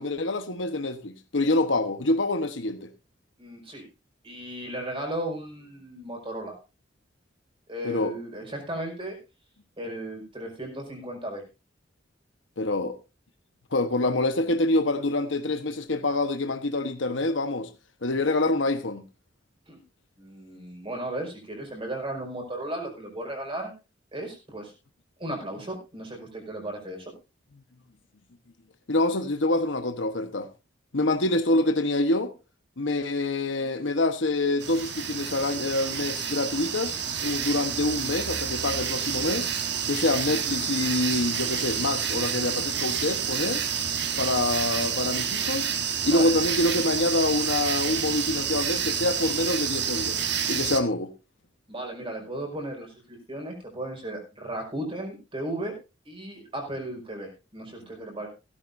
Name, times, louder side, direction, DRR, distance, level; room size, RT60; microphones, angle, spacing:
voice 1, 0.0-2.9 7.8-8.1 12.6-13.0 13.7-17.7 18.0-19.0 28.9-30.5 30.9-32.3 32.8-39.5 39.9-43.6 44.2-45.7 46.0-51.1, left 2 dB, 85° left, 1.2 m, -26 dB
voice 2, 3.4-3.8 4.2-6.6 7.7-9.2 9.8-11.4 19.7-19.8 20.2-23.7 24.1-24.7 25.2-27.1 46.0-46.3 51.7-55.7 56.1-58.3, right 1 dB, 30° right, 5.3 m, -35 dB
sound 1, 34.6-50.8, right 8 dB, 65° right, 1.4 m, -29 dB
16.0 x 13.0 x 2.7 m
head